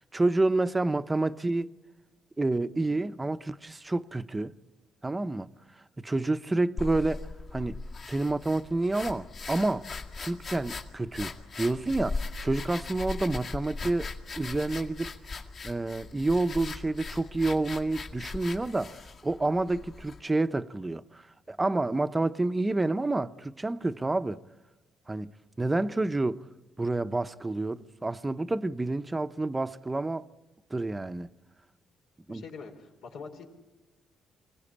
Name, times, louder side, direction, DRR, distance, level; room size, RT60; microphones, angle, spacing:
voice 1, 0.1-1.7 2.4-4.5 5.0-5.5 6.0-7.8 8.1-9.9 10.2-15.1 15.6-21.2 21.5-24.4 25.1-25.3 25.6-26.4 26.8-30.2 30.7-31.3 32.3-32.4, right 2 dB, 20° right, 0.7 m, -29 dB
sound 1, 6.8-20.2, left 4 dB, 50° left, 2.0 m, -39 dB
voice 2, 32.3-33.5, left 5 dB, 85° left, 3.6 m, -44 dB
25.0 x 17.0 x 8.7 m
cardioid pair, 90°, 0 cm